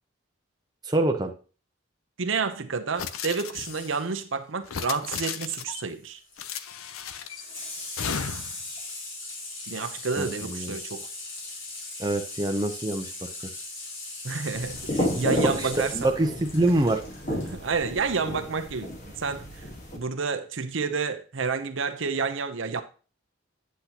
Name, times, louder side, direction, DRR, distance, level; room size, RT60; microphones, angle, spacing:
voice 1, 0.8-1.3 10.2-10.8 12.0-13.5 15.3-17.0, right 2 dB, 20° right, 0.7 m, -26 dB
voice 2, 2.2-6.2 9.7-11.1 14.2-16.1 16.8-16.9 17.3-18.9 19.2-19.6 19.9-22.8, right 5 dB, 70° right, 0.7 m, -30 dB
sound 1, 3.0-4.0 4.6-5.8 6.4-7.4 8.0-8.6, left 7 dB, 90° left, 0.6 m, -34 dB
Water tap faucet / Sink (filling or washing), 5.7-17.6 18.9-19.0, left 2 dB, 70° left, 2.6 m, -39 dB
sound 2, 14.5-20.0, left 1 dB, 35° left, 1.6 m, -32 dB
8.4 x 8.0 x 2.9 m
head